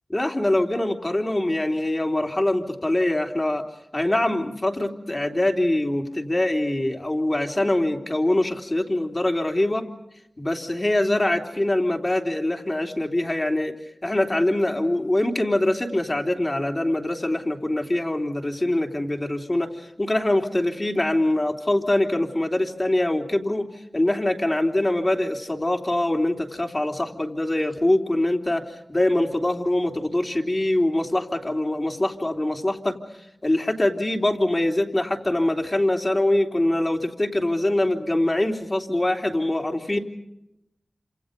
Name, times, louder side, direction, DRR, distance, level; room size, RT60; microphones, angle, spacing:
voice 1, 0.1-3.6 3.9-9.8 10.4-13.7 14.0-23.7 23.9-28.6 28.9-33.0 33.4-40.0, left 1 dB, 35° left, 3 dB, 3.4 m, -23 dB
28.5 x 27.0 x 5.3 m, 0.86 s
cardioid pair, 45°, 0 cm